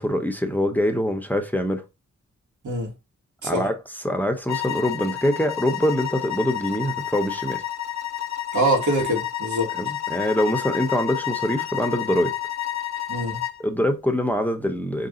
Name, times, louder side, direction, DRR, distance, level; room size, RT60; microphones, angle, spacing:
voice 1, 0.0-1.8 3.4-3.7 4.0-7.6 9.8-12.3 13.6-15.1, equal, 5° left, 0.7 m, -24 dB
sound 1, 4.5-13.6, left 11 dB, 65° left, 0.5 m, -30 dB
voice 2, 8.5-9.7 13.1-13.4, right 1 dB, 90° right, 1.9 m, -24 dB
4.8 x 2.6 x 3.8 m
wide cardioid pair, 95°, 30 cm